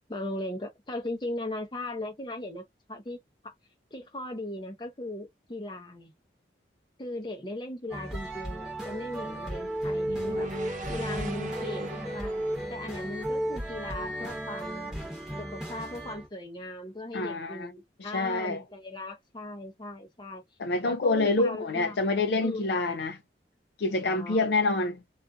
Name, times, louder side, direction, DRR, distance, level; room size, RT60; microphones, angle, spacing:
voice 1, 0.1-3.5 3.9-6.1 7.0-10.5 10.9-12.3 12.7-15.0 15.4-20.4 20.8-22.0 22.4-22.7 24.0-24.4, left 1 dB, 25° left, 0.6 m, -38 dB
sound 1, 7.9-16.3, right 1 dB, 5° right, 1.0 m, -34 dB
sound 2, 10.0-14.3, right 1 dB, 40° right, 0.5 m, -40 dB
voice 2, 17.1-17.7 18.1-18.6 20.6-23.2 23.8-25.0, left 3 dB, 65° left, 0.4 m, -27 dB
2.5 x 2.4 x 2.3 m
head